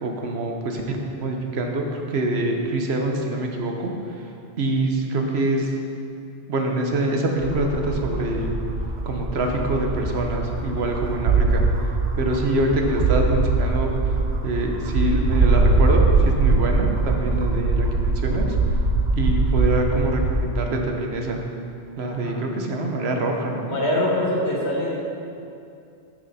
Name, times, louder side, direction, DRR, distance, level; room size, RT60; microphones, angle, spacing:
voice 1, 0.0-3.9 4.6-5.7 6.5-8.5 9.1-11.6 12.2-13.9 14.4-18.5 19.2-21.4 22.0-24.1, right 1 dB, 70° right, 2 dB, 1.1 m, -25 dB
sound 1, 7.4-20.3, right 3 dB, 50° right, 0.8 m, -22 dB
voice 2, 23.7-25.0, left 1 dB, 70° left, -4 dB, 1.9 m, -24 dB
9.0 x 6.4 x 4.1 m, 2.5 s
omnidirectional pair, 1.2 m